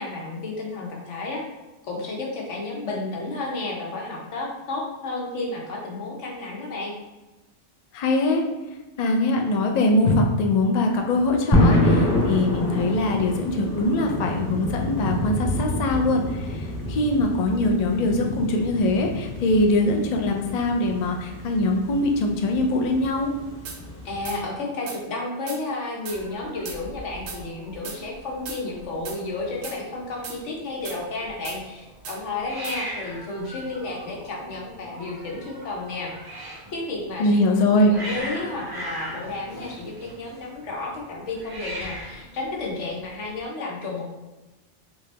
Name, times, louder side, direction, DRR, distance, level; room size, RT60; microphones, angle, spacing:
voice 1, 0.0-1.4 1.8-6.9 24.0-36.1 36.7-37.3 37.8-44.1, left 2 dB, 85° left, -2 dB, 1.2 m, -32 dB
voice 2, 7.9-8.4 9.0-23.3 37.2-37.9, left 2 dB, 55° left, 2 dB, 0.4 m, -22 dB
sound 1, 11.5-24.4, left 1 dB, 35° left, 1.3 m, -27 dB
sound 2, 23.6-23.8 24.2-24.4 24.9-25.0 25.5-25.6 26.0-26.2 26.6-26.8 27.3-27.4 27.8-28.0 28.5-28.6 29.0-29.2 29.6-29.8 30.2-30.4 30.8-31.0 31.4-31.6 32.0-32.2 32.6-32.8, right 6 dB, 75° right, 0.9 m, -37 dB
Hiss, 26.1-43.4, right 1 dB, 30° right, 0.4 m, -40 dB
3.4 x 2.9 x 3.3 m, 1.1 s
omnidirectional pair, 1.2 m